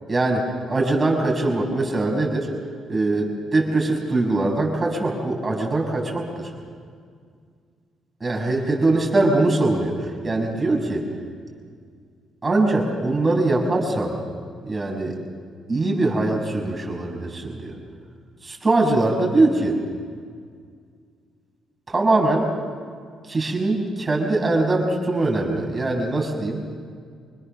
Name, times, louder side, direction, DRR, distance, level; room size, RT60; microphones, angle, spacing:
voice 1, 0.1-2.5 2.9-6.5 8.2-11.1 12.4-14.2 14.7-15.2 15.7-17.8 18.4-19.8 21.9-22.5 23.3-26.6, right 2 dB, 25° right, 0 dB, 6.1 m, -22 dB
26.0 x 21.0 x 6.8 m, 2.1 s
cardioid pair, 90°, 0 cm